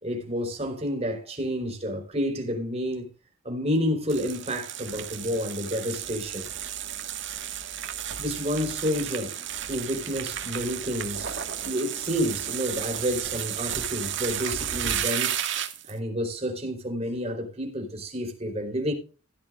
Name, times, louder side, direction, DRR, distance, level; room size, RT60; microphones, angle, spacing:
voice 1, 0.0-3.1 3.4-6.5 8.2-9.4 9.7-11.3 11.6-15.4 15.9-18.9, equal, 30° right, 4.1 m, -29 dB
sound 1, 4.1-15.9, right 10 dB, 60° right, 1.8 m, -33 dB
16.0 x 11.0 x 2.5 m
head